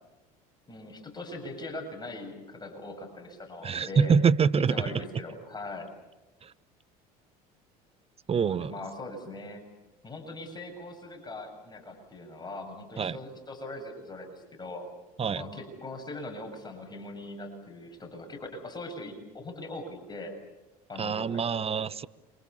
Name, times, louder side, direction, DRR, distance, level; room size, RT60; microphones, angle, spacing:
voice 1, 0.7-4.2 4.5-5.9 8.3-9.6 10.0-14.9 15.3-20.3 20.9-21.4 21.7-21.9, left 2 dB, 20° left, 7.7 m, -41 dB
voice 2, 3.6-4.9 6.4-6.5 8.3-8.7 13.0-13.2 15.2-15.4 21.0-22.1, right 6 dB, 30° right, 1.0 m, -25 dB
28.5 x 26.0 x 7.1 m
hypercardioid pair, 80°, 20 cm